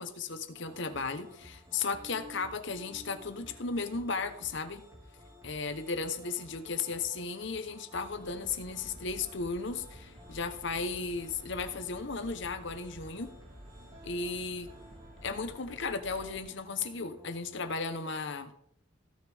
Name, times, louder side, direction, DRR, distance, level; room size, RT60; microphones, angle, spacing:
voice 1, 0.0-4.8 5.4-13.3 14.0-14.7 15.2-18.5, left 4 dB, 55° left, 9 dB, 0.9 m, -35 dB
sound 1, 0.5-17.8, equal, 15° right, 2.7 m, -54 dB
sound 2, 8.1-16.4, equal, 45° right, 2.8 m, -52 dB
16.5 x 6.2 x 3.5 m, 0.70 s
head